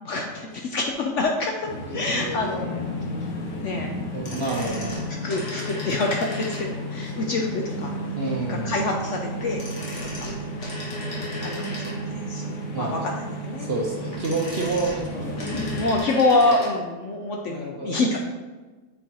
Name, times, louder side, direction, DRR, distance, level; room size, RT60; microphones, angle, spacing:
voice 1, 0.0-1.7 1.9-2.8 3.6-3.9 4.3-4.4 5.2-7.9 8.5-9.6 10.2-10.3 10.7-10.8 11.4-13.1 13.4-13.7 15.7-18.2, left 2 dB, 65° left, 1 dB, 0.8 m, -26 dB
sound 1, 1.6-16.0, left 1 dB, 85° left, 1.6 m, -33 dB
voice 2, 1.9-3.1 4.1-4.9 8.2-8.7 12.7-13.0 13.6-15.4 16.4-16.5 17.5-18.2, right 3 dB, 50° right, -2 dB, 0.8 m, -30 dB
sound 2, 4.1-7.0 9.4-12.3 13.9-16.8 17.0-17.1, left 2 dB, 50° left, 1.6 m, -37 dB
sound 3, 6.0-15.7, right 7 dB, 75° right, 1.2 m, -38 dB
7.9 x 4.3 x 2.9 m, 1.2 s
omnidirectional pair, 1.7 m